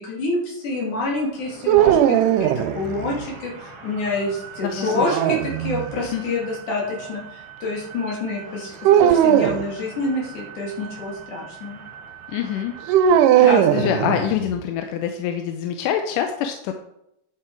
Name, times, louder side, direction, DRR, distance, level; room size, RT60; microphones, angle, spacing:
voice 1, 0.0-8.8 9.0-11.8 13.4-14.1, left 2 dB, 70° left, -2 dB, 4.0 m, -27 dB
sound 1, 0.6-14.3, right 6 dB, 50° right, 2.5 m, -42 dB
sound 2, 1.7-3.2 4.9-6.0 8.9-9.7 12.9-14.5, right 10 dB, 85° right, 2.2 m, -18 dB
voice 2, 4.6-5.3 6.0-6.2 12.3-12.7 13.3-16.7, left 9 dB, 90° left, 5 dB, 2.3 m, -26 dB
10.0 x 7.5 x 4.6 m, 0.81 s
omnidirectional pair, 3.7 m